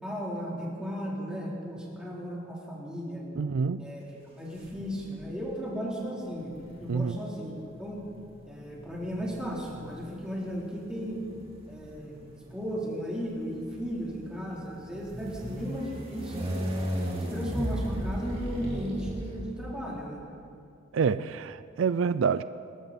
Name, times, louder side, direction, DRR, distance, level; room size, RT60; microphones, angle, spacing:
voice 1, 0.0-3.2 3.8-4.0 4.4-6.5 6.8-7.5 7.8-8.0 8.5-11.2 11.7-16.5 17.1-20.2, equal, 5° right, -5 dB, 3.5 m, -35 dB
voice 2, 3.4-3.9 6.9-7.2 20.9-22.4, right 6 dB, 70° right, 14 dB, 0.4 m, -27 dB
sound 1, 4.6-5.3 6.3-20.0, equal, 30° right, 2.8 m, -37 dB
25.5 x 13.5 x 4.2 m, 2.4 s
head